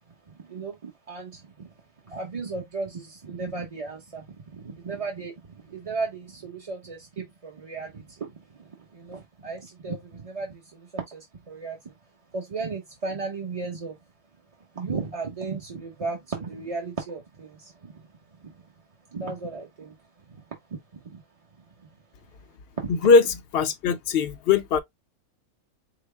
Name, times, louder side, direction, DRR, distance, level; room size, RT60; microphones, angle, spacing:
voice 1, 0.3-1.7 2.0-11.9 12.3-14.0 14.7-18.1 18.4-18.7 19.1-21.2 21.7-21.9 22.8-22.9, right 4 dB, 30° right, 0.7 m, -35 dB
voice 2, 23.5-24.8, left 5 dB, 60° left, 0.6 m, -19 dB
4.9 x 2.0 x 3.2 m
omnidirectional pair, 1.5 m